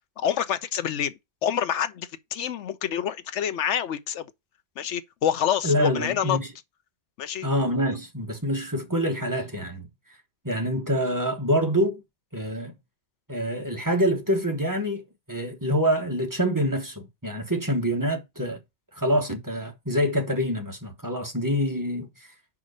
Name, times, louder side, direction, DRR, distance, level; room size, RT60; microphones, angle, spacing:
voice 1, 0.2-4.3 4.8-6.4 7.2-7.5, left 9 dB, 80° left, 1.0 m, -27 dB
voice 2, 5.6-6.5 7.4-9.9 10.4-12.0 12.3-12.7 13.3-18.6 18.9-22.1, equal, 15° right, 1.3 m, -26 dB
5.4 x 4.9 x 6.4 m
omnidirectional pair, 1.2 m